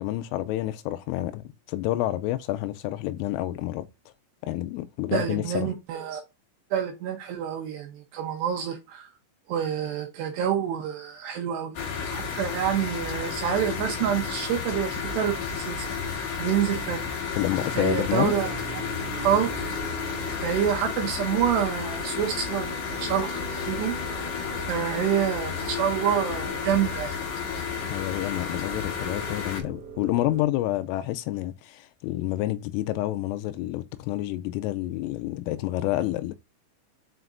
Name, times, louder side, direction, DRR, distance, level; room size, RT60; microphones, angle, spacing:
voice 1, 0.0-3.9 4.4-5.7 17.3-18.3 27.9-36.3, left 15 dB, 90° left, 3.2 m, -29 dB
voice 2, 5.1-6.2 6.7-9.1 9.5-11.7 12.1-17.0 17.7-18.8 19.2-19.5 20.3-24.3 24.6-27.2, right 9 dB, 80° right, 2.6 m, -28 dB
sound 1, 11.7-29.6, left 6 dB, 70° left, 1.9 m, -32 dB
sound 2, 16.0-30.4, right 2 dB, 35° right, 2.4 m, -41 dB
8.0 x 5.1 x 2.6 m
omnidirectional pair, 5.8 m